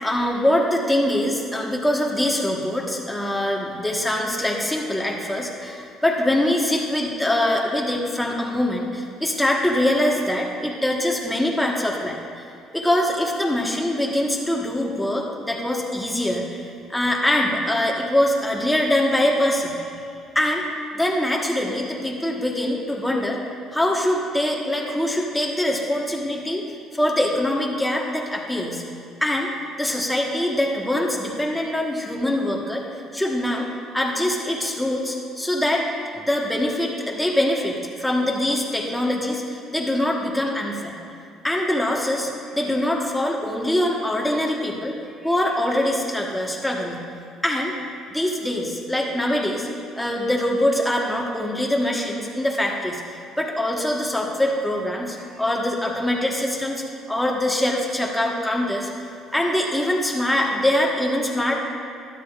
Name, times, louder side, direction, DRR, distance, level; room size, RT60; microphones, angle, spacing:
voice 1, 0.0-12.2 12.7-19.8 20.3-20.6 20.9-23.4 23.7-26.6 26.9-28.8 29.2-29.5 29.8-32.8 33.1-33.7 33.9-35.9 36.1-40.9 41.4-45.0 45.2-47.0 47.4-47.7 48.1-49.7 50.0-58.9 59.3-61.6, left 1 dB, 5° left, -1 dB, 1.4 m, -23 dB
13.0 x 12.0 x 2.5 m, 2.5 s
cardioid pair, 110°, 0 cm